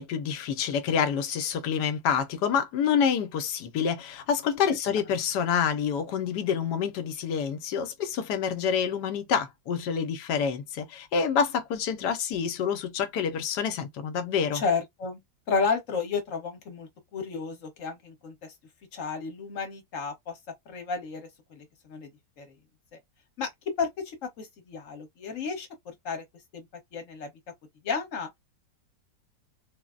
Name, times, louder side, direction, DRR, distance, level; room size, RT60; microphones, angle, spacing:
voice 1, 0.0-14.6, left 7 dB, 75° left, 1.2 m, -27 dB
voice 2, 14.5-15.2 15.5-18.5 18.9-20.4 20.7-22.1 22.4-22.5 22.9-23.0 23.4-23.5 23.8-26.2 26.5-26.7 26.9-27.3 27.8-28.3, left 5 dB, 55° left, 1.2 m, -32 dB
3.8 x 2.0 x 2.3 m
omnidirectional pair, 1.9 m